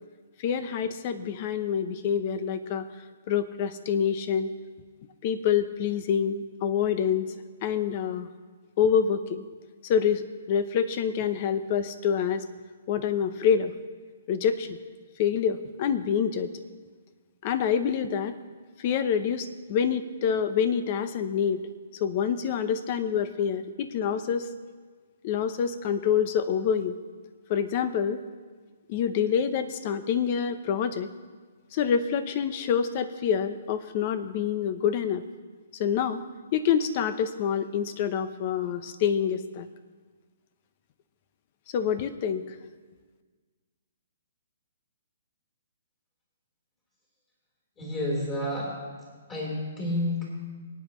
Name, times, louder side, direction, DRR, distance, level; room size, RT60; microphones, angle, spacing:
voice 1, 0.4-2.9 3.3-4.5 5.2-7.3 7.6-8.3 8.8-9.4 9.8-12.4 12.9-13.7 14.3-14.8 15.2-16.5 17.4-18.4 18.8-21.6 21.9-24.5 25.2-27.0 27.5-28.2 28.9-31.1 31.7-35.3 35.8-36.2 36.5-39.7 41.7-42.6, left 7 dB, 40° left, 12 dB, 0.8 m, -26 dB
voice 2, 47.8-48.7 49.3-50.2, left 1 dB, 20° left, -5 dB, 3.9 m, -29 dB
24.5 x 9.2 x 3.1 m, 1.5 s
hypercardioid pair, 150°, 0 cm